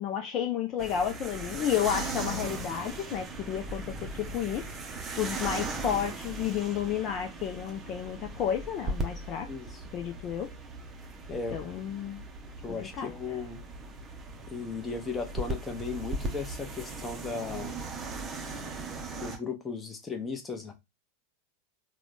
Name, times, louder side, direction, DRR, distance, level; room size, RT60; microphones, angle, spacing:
voice 1, 0.0-4.7 5.2-9.5 9.9-10.5 11.5-12.2 12.7-13.1, left 9 dB, 35° left, 0.4 m, -31 dB
sound 1, 0.8-19.4, right 2 dB, 20° right, 0.7 m, -38 dB
voice 2, 9.5-9.8 11.3-11.6 12.6-13.6 14.5-17.7 19.2-20.7, left 4 dB, 15° left, 0.8 m, -36 dB
3.7 x 2.2 x 3.3 m
figure-of-eight pair, 90°, 0 cm